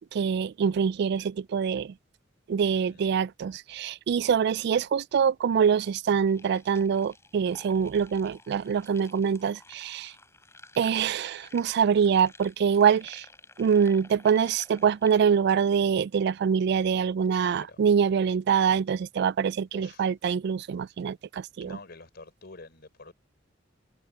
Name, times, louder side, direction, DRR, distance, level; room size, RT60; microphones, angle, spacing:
voice 1, 0.1-1.9 2.5-10.1 10.8-13.2 13.6-21.8, right 7 dB, 60° right, 0.3 m, -25 dB
voice 2, 2.7-3.0 17.3-17.8 19.7-20.1 21.6-23.1, left 3 dB, 55° left, 3.8 m, -47 dB
sound 1, 6.3-15.4, left 2 dB, 15° left, 5.8 m, -52 dB
head